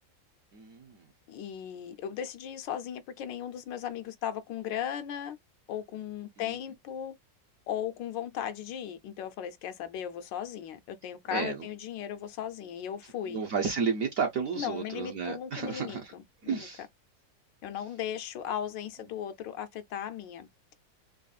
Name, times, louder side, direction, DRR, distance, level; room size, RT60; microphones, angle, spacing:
voice 1, 0.5-1.1 6.4-6.5 11.3-11.7 13.3-16.1 16.4-16.8, right 5 dB, 60° right, 0.9 m, -32 dB
voice 2, 1.3-5.4 5.7-7.1 7.7-13.4 14.6-16.2 16.6-16.7 17.6-20.5, left 9 dB, 75° left, 1.3 m, -37 dB
4.1 x 3.0 x 2.3 m
omnidirectional pair, 2.1 m